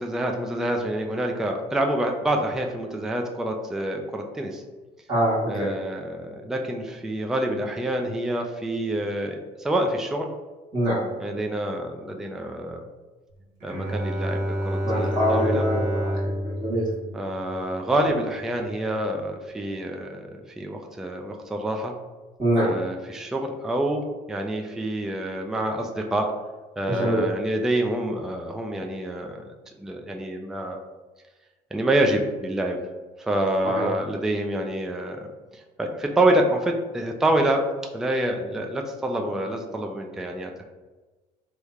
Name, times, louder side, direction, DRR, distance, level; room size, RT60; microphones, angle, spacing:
voice 1, 0.0-4.6 5.5-10.3 11.2-12.8 13.6-15.7 17.1-22.0 22.6-26.3 26.8-29.5 29.8-30.8 31.7-32.8 33.2-40.7, right 1 dB, 5° right, 2 dB, 0.3 m, -27 dB
voice 2, 5.1-5.7 10.7-11.0 14.8-16.8 22.4-22.7 26.9-27.2 33.7-33.9, equal, 25° right, -8 dB, 1.1 m, -24 dB
Bowed string instrument, 13.6-18.1, equal, 60° right, 1.3 m, -29 dB
3.1 x 2.1 x 3.6 m, 1.2 s
cardioid pair, 110°, 17 cm